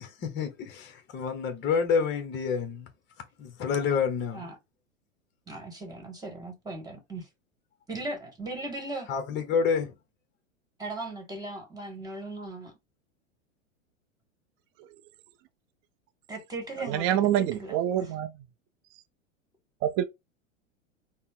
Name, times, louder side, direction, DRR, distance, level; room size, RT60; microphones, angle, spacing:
voice 1, 0.0-2.9 3.4-4.5 9.1-9.9, left 6 dB, 30° left, 0.9 m, -28 dB
voice 2, 5.5-7.3 7.9-9.1 10.8-12.7 16.3-18.0, right 2 dB, 10° right, 1.6 m, -38 dB
voice 3, 16.8-18.3 19.8-20.0, right 11 dB, 35° right, 0.5 m, -26 dB
4.2 x 2.1 x 3.6 m
hypercardioid pair, 105°, 39 cm